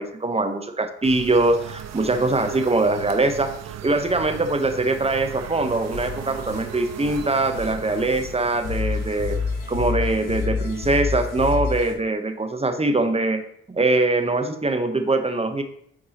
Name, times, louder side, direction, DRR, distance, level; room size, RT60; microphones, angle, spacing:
voice 1, 0.0-3.5 3.8-9.4 9.7-13.4 13.7-15.6, right 2 dB, 20° right, 7 dB, 0.9 m, -22 dB
sound 1, 1.0-11.6, right 9 dB, 55° right, 0.6 m, -38 dB
sound 2, 5.6-11.9, left 5 dB, 85° left, 1.2 m, -29 dB
8.6 x 4.6 x 2.9 m, 0.69 s
supercardioid pair, 60°, 31 cm